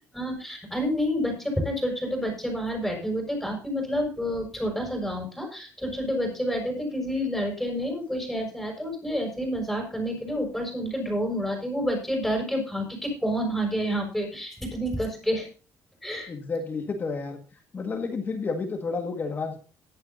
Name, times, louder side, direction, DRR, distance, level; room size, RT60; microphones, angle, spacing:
voice 1, 0.1-15.5 16.0-16.3, equal, ahead, 1 dB, 6.5 m, -29 dB
voice 2, 16.3-17.4 17.7-19.6, left 4 dB, 30° left, 5 dB, 1.8 m, -30 dB
17.5 x 11.0 x 2.7 m, 0.36 s
cardioid pair, 135°, 6 cm